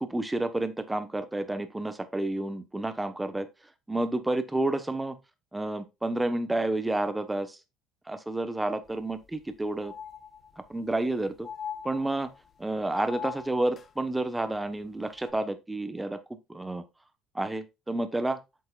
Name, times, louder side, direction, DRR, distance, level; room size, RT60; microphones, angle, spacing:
voice 1, 0.0-3.5 3.9-5.2 5.5-7.6 8.1-9.9 10.7-11.5 11.9-12.3 12.6-16.2 16.5-16.8 17.3-18.4, right 2 dB, 10° right, 1.0 m, -30 dB
sound 1, 8.9-9.0 9.3-9.4 9.8-10.8 11.4-12.5 12.9-13.9 15.2-15.3, left 7 dB, 30° left, 0.9 m, -41 dB
9.0 x 6.3 x 2.4 m
cardioid pair, 120°, 0 cm